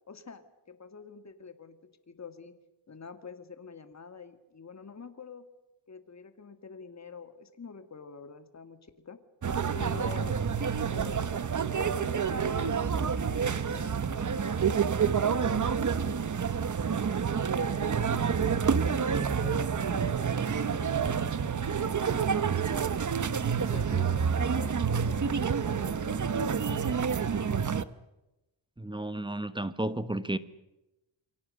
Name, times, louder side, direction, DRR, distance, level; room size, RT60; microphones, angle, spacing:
voice 1, 0.1-2.6 2.9-5.4 5.9-9.2 9.7-10.4 10.9-14.6 15.1-16.4 18.4-23.1 23.6-27.6, left 4 dB, 35° left, 2.1 m, -46 dB
sound 1, 9.4-27.8, right 6 dB, 40° right, 1.0 m, -28 dB
voice 2, 28.8-30.4, right 1 dB, 10° right, 1.1 m, -32 dB
28.5 x 23.5 x 6.6 m
wide cardioid pair, 125°, 46 cm